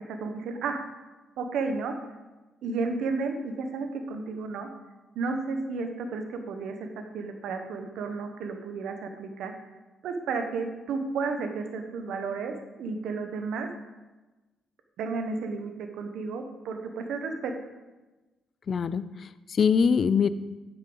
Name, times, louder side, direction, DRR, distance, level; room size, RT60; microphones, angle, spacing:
voice 1, 0.2-0.8 1.4-1.9 2.6-4.7 5.1-6.9 7.1-9.5 10.0-13.7 15.0-17.5, right 4 dB, 80° right, 6 dB, 1.0 m, -32 dB
voice 2, 18.7-20.3, left 6 dB, 50° left, 15 dB, 0.4 m, -24 dB
9.5 x 8.1 x 3.9 m, 1.2 s
cardioid pair, 90°, 0 cm